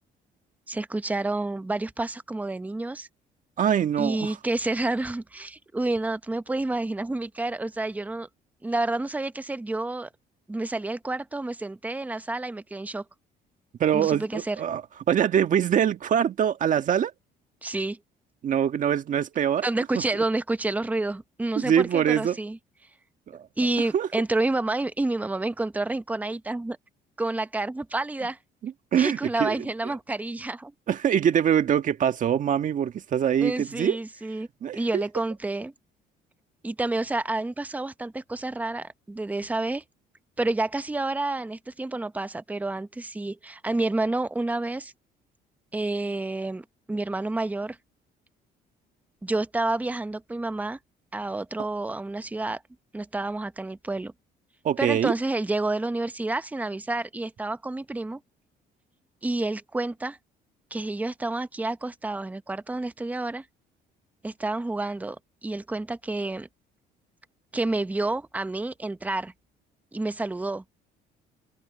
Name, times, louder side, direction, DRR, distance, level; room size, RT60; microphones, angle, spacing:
voice 1, 0.7-3.1 4.0-8.3 8.6-10.1 10.5-13.0 13.9-14.6 17.6-18.0 19.6-22.6 23.6-26.8 27.2-28.4 28.9-30.7 33.4-34.5 34.7-35.7 36.6-39.8 40.4-44.9 45.7-47.8 49.2-50.8 51.1-52.6 52.9-54.1 54.8-58.2 59.2-60.2 60.7-63.4 64.2-66.5 67.5-69.3 69.9-70.6, right 2 dB, 10° right, 0.8 m, -29 dB
voice 2, 3.6-4.3 13.8-14.8 15.1-17.1 18.4-19.7 21.5-22.4 23.9-24.1 28.6-29.7 30.9-34.0 34.6-35.0 54.6-55.1, right 9 dB, 50° right, 1.7 m, -23 dB
cardioid pair, 110°, 17 cm